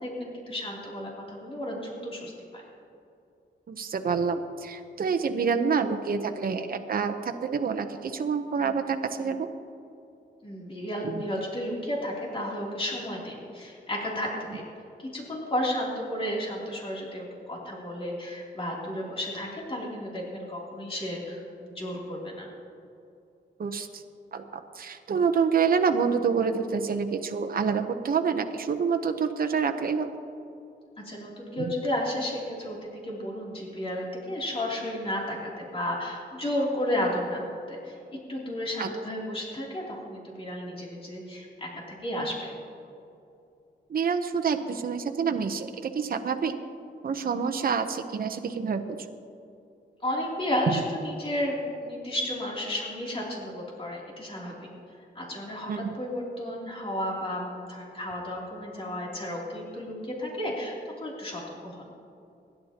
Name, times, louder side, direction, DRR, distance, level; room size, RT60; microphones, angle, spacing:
voice 1, 0.0-2.6 10.4-14.6 15.0-22.5 31.0-37.4 37.7-38.0 38.3-42.5 50.0-54.5 55.1-62.0, left 1 dB, 30° left, -4 dB, 3.0 m, -33 dB
voice 2, 3.7-9.5 11.0-11.2 23.6-24.0 24.3-30.1 31.6-31.7 38.8-38.9 43.9-46.5 47.0-49.0 50.7-50.8 55.7-56.0, right 6 dB, 50° right, 6 dB, 0.8 m, -27 dB
26.0 x 11.0 x 2.9 m, 2.6 s
wide cardioid pair, 135°, 19 cm